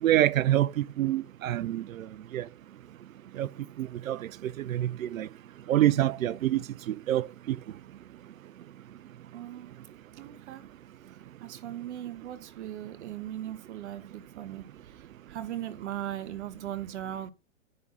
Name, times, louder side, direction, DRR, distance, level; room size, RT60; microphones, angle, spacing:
voice 1, 0.0-2.1 2.3-2.5 3.4-3.5 3.8-5.3 5.7-6.6 6.9-7.6, right 13 dB, 85° right, 0.6 m, -26 dB
voice 2, 9.3-9.8 10.2-10.6 11.4-14.7 15.3-17.3, right 11 dB, 60° right, 1.5 m, -38 dB
9.5 x 3.8 x 6.0 m
hypercardioid pair, 130°, 39 cm